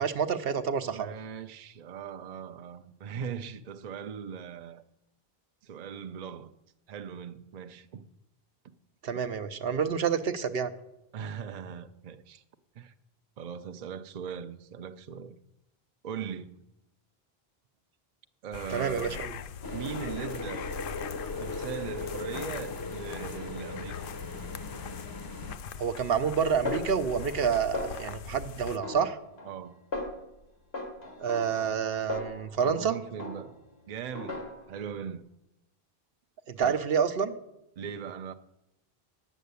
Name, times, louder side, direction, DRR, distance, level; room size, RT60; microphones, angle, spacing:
voice 1, 0.0-1.1 9.0-10.7 18.7-19.3 25.8-29.2 31.2-32.9 36.5-37.4, right 7 dB, 70° right, 1.0 m, -28 dB
voice 2, 0.9-4.8 5.6-6.5 6.9-8.1 11.1-12.4 12.7-12.9 13.4-15.4 16.0-16.6 18.4-19.3 19.7-20.7 21.4-24.0 29.5-29.8 32.6-33.5 33.9-35.3 36.6-36.8 37.8-38.3, right 7 dB, 50° right, 0.6 m, -39 dB
sound 1, 18.5-28.8, left 7 dB, 65° left, 0.7 m, -41 dB
sound 2, 19.6-25.6, left 3 dB, 25° left, 0.6 m, -39 dB
Snare drum, 26.7-27.5 27.7-28.3 28.8-29.6 29.9-30.3 30.7-32.8 33.2-33.7 34.2-34.8, left 2 dB, 85° left, 2.0 m, -38 dB
10.0 x 7.2 x 8.2 m
omnidirectional pair, 1.0 m